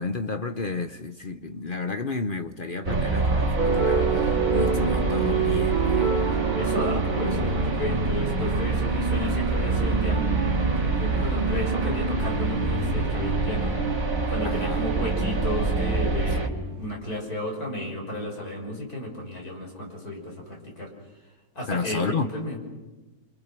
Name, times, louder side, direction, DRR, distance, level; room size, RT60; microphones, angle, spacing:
voice 1, 0.0-6.4 11.2-11.4 14.4-14.8 16.3-16.4 21.7-22.3, left 4 dB, 40° left, 0.9 m, -32 dB
sound 1, 2.8-16.5, right 3 dB, 65° right, 2.6 m, -26 dB
sound 2, 3.6-16.9, right 5 dB, 35° right, 1.2 m, -29 dB
voice 2, 6.5-13.7 14.2-20.9 21.5-22.6, left 1 dB, 80° left, 6.3 m, -33 dB
28.5 x 26.5 x 6.0 m
omnidirectional pair, 1.6 m